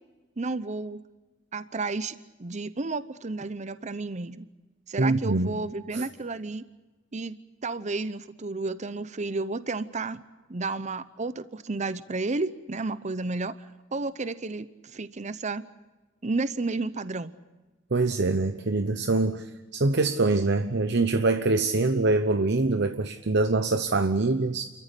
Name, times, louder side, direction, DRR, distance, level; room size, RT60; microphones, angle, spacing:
voice 1, 0.4-1.0 1.5-4.5 4.9-6.6 7.1-7.4 7.6-10.2 10.5-13.5 13.9-15.6 16.2-17.3, right 3 dB, 35° right, 14 dB, 0.7 m, -32 dB
voice 2, 5.0-5.5 5.9-6.0 17.9-24.6, right 3 dB, 60° right, 9 dB, 0.9 m, -24 dB
30.0 x 14.5 x 9.9 m, 1.2 s
head